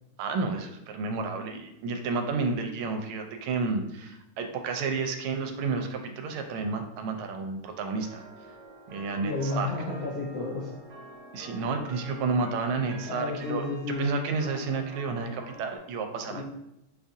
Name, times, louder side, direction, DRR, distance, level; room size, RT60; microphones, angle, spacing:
voice 1, 0.2-8.2 8.9-9.7 11.3-13.6 14.0-16.4, right 4 dB, 80° right, 5 dB, 1.4 m, -31 dB
sound 1, 8.0-15.8, right 2 dB, 65° right, 1.1 m, -47 dB
voice 2, 9.2-10.7 13.1-14.1 16.3-16.4, left 3 dB, 85° left, -3 dB, 0.8 m, -32 dB
6.7 x 2.4 x 2.6 m, 0.87 s
omnidirectional pair, 2.4 m